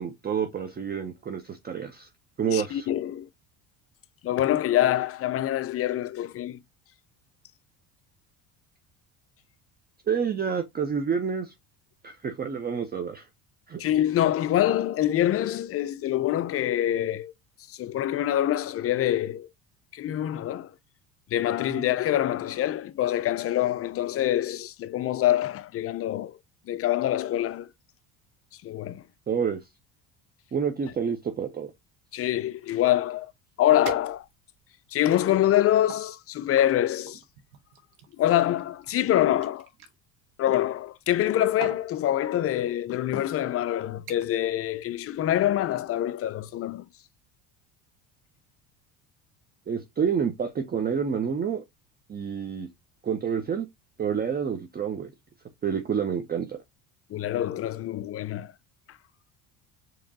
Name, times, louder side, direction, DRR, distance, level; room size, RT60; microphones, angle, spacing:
voice 1, 0.0-2.1 2.4-2.9 10.1-11.5 12.0-13.3 13.7-13.8 21.7-21.8 29.3-29.6 30.5-31.7 49.7-51.6 52.1-52.7 53.0-53.7 54.0-55.1 55.6-56.6, right 7 dB, 25° right, 0.6 m, -28 dB
voice 2, 2.5-3.3 4.2-6.6 13.8-17.3 17.7-19.5 19.9-20.7 21.3-26.4 26.7-27.7 28.6-29.0 32.1-33.3 33.6-34.3 34.9-37.2 38.2-39.7 40.4-46.9 57.1-58.5, left 12 dB, 35° left, 0.4 m, -25 dB
sound 1, 33.8-34.6 35.2-36.1 37.1-39.9 41.0-41.3 41.6-41.9 42.8-43.0 43.4-43.7 44.1-44.5 44.8-45.2 45.5-45.6, right 6 dB, 80° right, 1.3 m, -43 dB
5.0 x 3.0 x 2.7 m
supercardioid pair, 85°, 43 cm